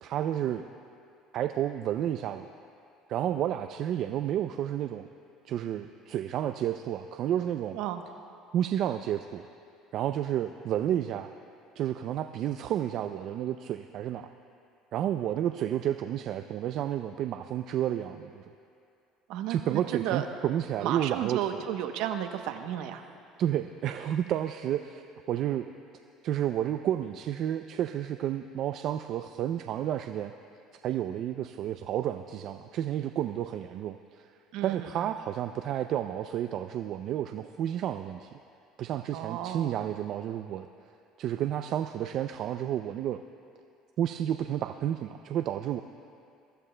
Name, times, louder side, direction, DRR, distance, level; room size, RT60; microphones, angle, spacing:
voice 1, 0.0-0.7 1.3-2.5 3.1-5.1 5.4-7.8 8.5-9.4 9.9-11.3 11.8-14.3 14.9-18.5 19.5-21.6 23.4-25.7 26.2-30.3 30.8-34.3 34.6-38.4 38.8-40.7 41.2-43.2 44.0-45.8, right 11 dB, 60° right, 8 dB, 0.4 m, -31 dB
voice 2, 19.3-20.3 20.8-23.0 34.5-35.1 39.1-39.8, right 11 dB, 75° right, 7 dB, 0.8 m, -33 dB
22.0 x 14.5 x 2.2 m, 2.5 s
supercardioid pair, 105°, 0 cm